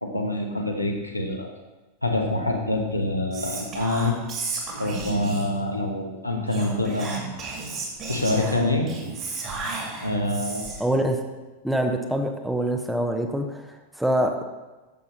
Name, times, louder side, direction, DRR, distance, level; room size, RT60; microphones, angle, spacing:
voice 1, 0.0-1.5 2.0-4.2 4.8-7.3 8.1-8.9 10.0-10.7, left 1 dB, 90° left, 1 dB, 1.3 m, -26 dB
Whispering, 3.3-5.6 6.5-10.9, right 3 dB, 35° right, 2.6 m, -33 dB
voice 2, 10.8-11.2 11.6-14.5, right 1 dB, 5° right, 5 dB, 1.0 m, -25 dB
12.5 x 7.2 x 4.0 m, 1.2 s
figure-of-eight pair, 90°, 0 cm